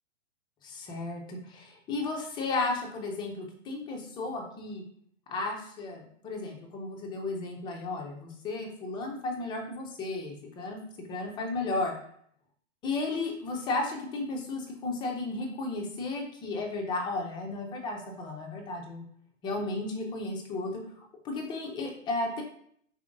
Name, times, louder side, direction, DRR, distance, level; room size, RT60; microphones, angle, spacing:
voice 1, 0.6-4.8 5.3-10.8 11.1-11.9 12.8-19.0 19.4-22.4, left 3 dB, 10° left, 2 dB, 0.5 m, -34 dB
4.8 x 3.8 x 2.6 m, 0.66 s
hypercardioid pair, 135°, 38 cm